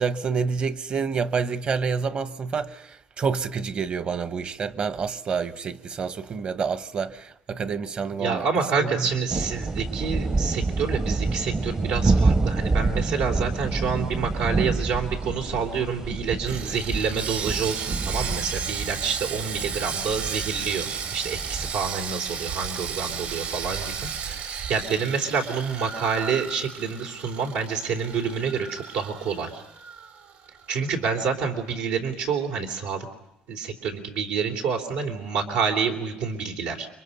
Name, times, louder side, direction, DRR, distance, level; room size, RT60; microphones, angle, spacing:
voice 1, 0.0-8.5 8.8-9.1, right 5 dB, 40° right, 1.2 m, -28 dB
voice 2, 8.1-29.6 30.7-33.1 33.5-36.9, right 6 dB, 90° right, 3.4 m, -28 dB
sound 1, 9.3-21.7, right 3 dB, 25° right, 0.8 m, -27 dB
Sawing, 16.5-30.7 31.0-31.1 31.6-31.7, right 7 dB, 70° right, 3.5 m, -34 dB
29.5 x 24.5 x 5.6 m
cardioid pair, 105°, 3 cm